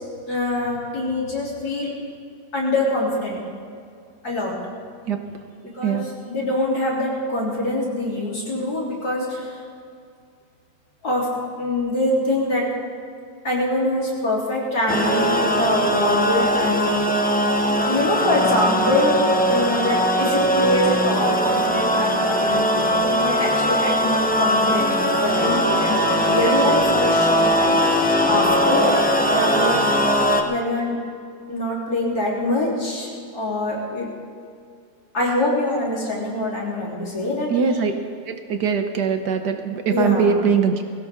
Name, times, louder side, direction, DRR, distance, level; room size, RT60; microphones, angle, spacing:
voice 1, 0.3-1.9 2.5-3.4 4.2-4.5 5.7-9.6 11.0-11.3 11.6-12.7 13.4-17.0 17.9-19.2 19.5-27.8 28.3-28.9 29.3-29.8 30.4-31.0 31.5-33.1 33.3-34.1 35.1-37.8 39.9-40.4, left 1 dB, 55° left, -5 dB, 4.1 m, -24 dB
sound 1, 14.9-30.4, equal, 10° left, 0.4 m, -20 dB
voice 2, 37.5-37.9 38.3-40.8, right 6 dB, 65° right, 6 dB, 1.4 m, -21 dB
20.5 x 16.5 x 3.6 m, 2.3 s
omnidirectional pair, 2.0 m